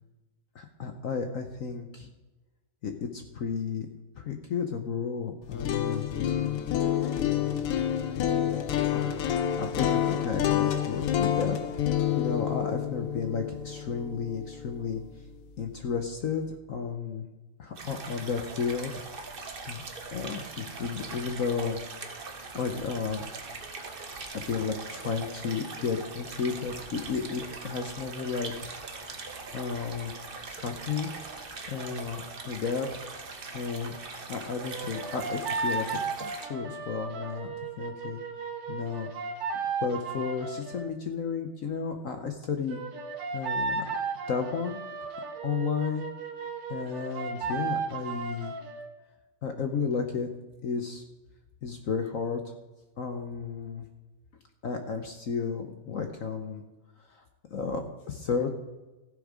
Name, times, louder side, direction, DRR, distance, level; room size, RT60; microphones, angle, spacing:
voice 1, 0.5-2.1 2.8-3.9 4.2-6.1 8.9-9.3 9.6-15.0 15.6-17.2 17.6-18.9 19.2-19.8 20.1-21.8 22.5-23.3 24.2-29.3 29.5-30.1 30.5-31.1 31.7-33.0 33.5-38.2 38.7-39.1 39.8-42.8 43.3-43.8 44.3-46.1 46.7-48.6 49.4-50.3 50.6-51.0 51.6-52.4 53.0-53.9 54.6-56.6 57.1-57.2 57.5-58.5, left 5 dB, 65° left, 5 dB, 0.8 m, -33 dB
sound 1, 5.4-15.5, left 10 dB, 90° left, 1.8 m, -28 dB
sound 2, 17.7-36.5, right 4 dB, 45° right, 0.7 m, -41 dB
sound 3, 34.7-40.9 42.7-48.9, right 4 dB, 75° right, 2.2 m, -35 dB
15.0 x 7.3 x 4.9 m, 1.1 s
omnidirectional pair, 2.4 m